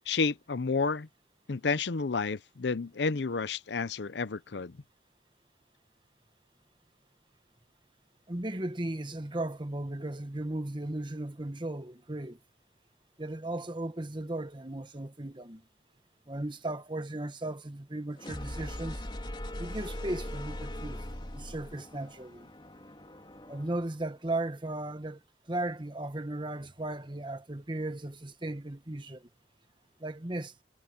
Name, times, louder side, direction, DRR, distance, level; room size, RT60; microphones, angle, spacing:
voice 1, 0.1-1.1 1.5-4.8, left 4 dB, 80° left, 0.7 m, -30 dB
voice 2, 8.3-12.4 13.2-15.6 16.3-19.0 19.6-21.0 21.3-22.5 23.5-25.2 25.5-29.3 30.0-30.5, right 1 dB, 25° right, 1.4 m, -36 dB
sound 1, 18.1-24.0, left 1 dB, 25° left, 3.2 m, -40 dB
head